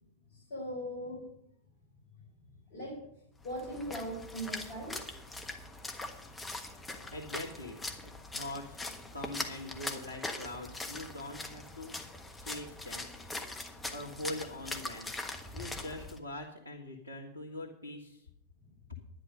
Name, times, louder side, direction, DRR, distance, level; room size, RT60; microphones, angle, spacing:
voice 1, 0.3-1.3 2.7-3.0 3.4-5.0 6.6-7.0 18.6-18.7, equal, 55° left, 0 dB, 4.2 m, -40 dB
Splash splatter, 3.4-16.2, left 2 dB, 10° left, 1.4 m, -42 dB
voice 2, 7.1-8.8 9.1-12.0 12.4-13.1 13.9-15.1 15.5-18.3 18.9-19.0, left 2 dB, 90° right, -2 dB, 1.8 m, -43 dB
11.0 x 10.5 x 5.5 m, 0.76 s
figure-of-eight pair, 90°, 0 cm